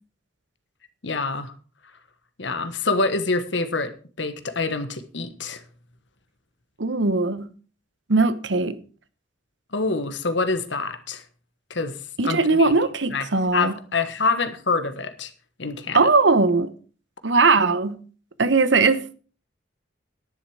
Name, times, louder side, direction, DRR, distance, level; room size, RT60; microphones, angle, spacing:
voice 1, 1.0-1.5 2.4-3.9 4.2-5.6 9.7-11.2 11.7-11.9 12.2-12.7 13.1-13.3 13.5-15.3 15.6-16.1, left 3 dB, 80° left, 1.4 m, -26 dB
voice 2, 6.8-7.5 8.1-8.8 12.2-13.7 15.9-16.7 17.2-18.0 18.4-19.0, right 3 dB, 80° right, 1.0 m, -19 dB
11.0 x 10.5 x 4.9 m
head